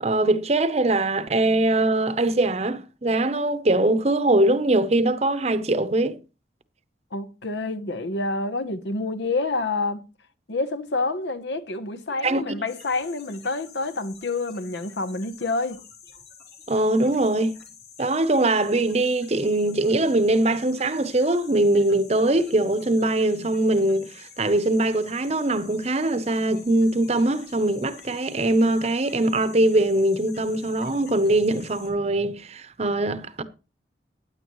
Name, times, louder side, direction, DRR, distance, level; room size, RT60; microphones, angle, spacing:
voice 1, 0.0-6.2 12.2-12.4 16.7-17.5 18.0-33.4, right 2 dB, 35° right, 0.8 m, -22 dB
voice 2, 7.1-10.1 10.5-15.8, left 3 dB, 80° left, 1.0 m, -28 dB
sound 1, 12.7-31.9, left 7 dB, 60° left, 2.8 m, -48 dB
15.5 x 9.6 x 3.1 m
head